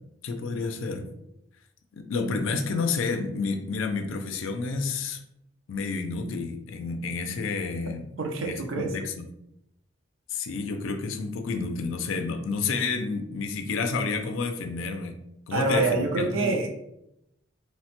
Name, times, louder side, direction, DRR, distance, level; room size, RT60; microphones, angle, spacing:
voice 1, 0.2-1.1 1.9-5.2 5.7-8.1 8.4-9.3 10.3-15.2 15.5-16.5, left 4 dB, 80° left, 6 dB, 0.4 m, -30 dB
voice 2, 8.2-8.9 15.5-16.7, right 3 dB, 90° right, 3 dB, 0.5 m, -26 dB
3.0 x 2.1 x 2.9 m, 0.82 s
head